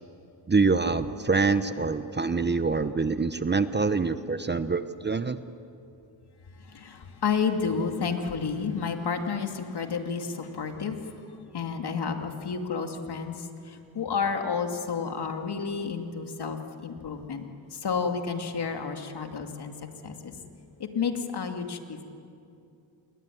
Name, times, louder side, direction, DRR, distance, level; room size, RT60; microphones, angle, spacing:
voice 1, 0.5-5.4, right 4 dB, 25° right, 11 dB, 0.9 m, -25 dB
voice 2, 6.7-11.2 11.5-17.5 17.7-19.7 20.0-20.3 20.8-22.0, left 5 dB, 55° left, 5 dB, 2.6 m, -31 dB
28.0 x 22.0 x 9.4 m, 2.7 s
cardioid pair, 95°, 46 cm